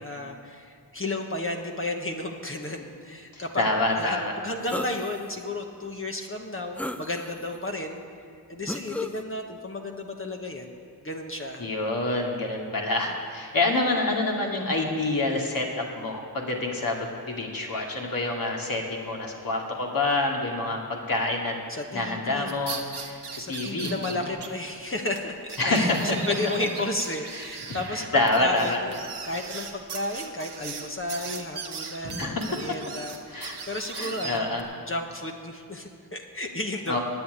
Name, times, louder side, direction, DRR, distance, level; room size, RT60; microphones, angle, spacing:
voice 1, 0.0-3.6 3.9-8.0 8.5-10.7 11.0-11.6 21.7-22.6 23.4-29.0 29.2-34.5 34.9-37.0, left 2 dB, 30° left, 2 dB, 1.2 m, -33 dB
voice 2, 3.3-4.3 11.6-21.6 21.9-24.3 25.6-26.2 27.3-28.8 31.8-32.5 33.3-33.6 33.9-34.6 36.9-37.0, left 2 dB, 55° left, -1 dB, 2.4 m, -27 dB
sound 1, 4.7-5.3 5.8-5.9 6.8-7.6 8.7-9.2, left 1 dB, 5° left, 0.5 m, -34 dB
sound 2, 22.5-24.5 24.8-24.9 25.1-25.2 25.5-34.6, right 5 dB, 85° right, 1.2 m, -39 dB
10.5 x 8.7 x 9.2 m, 2.2 s
cardioid pair, 55°, 40 cm